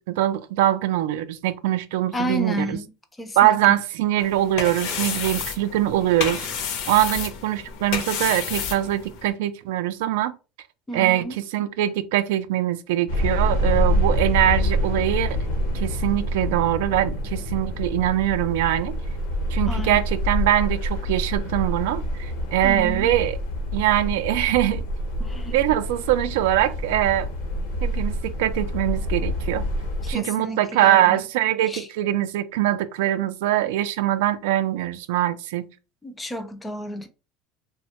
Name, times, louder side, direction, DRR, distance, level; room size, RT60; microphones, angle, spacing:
voice 1, 0.0-2.8 3.4-6.5 6.9-10.3 10.9-11.2 11.5-15.4 15.7-18.9 19.5-23.4 23.7-24.8 25.5-27.3 27.8-29.6 30.1-35.7, right 13 dB, 85° right, 0.3 m, -22 dB
voice 2, 2.1-2.9 3.2-3.6 10.9-11.4 19.7-20.0 22.6-23.1 25.2-25.6 30.0-31.2 31.6-31.9 36.0-37.1, right 1 dB, 10° left, 0.3 m, -31 dB
sound 1, 4.2-9.3, left 7 dB, 60° left, 0.5 m, -30 dB
sound 2, 13.1-30.1, equal, 85° left, 0.8 m, -26 dB
3.1 x 2.1 x 2.8 m
cardioid pair, 175°, 0 cm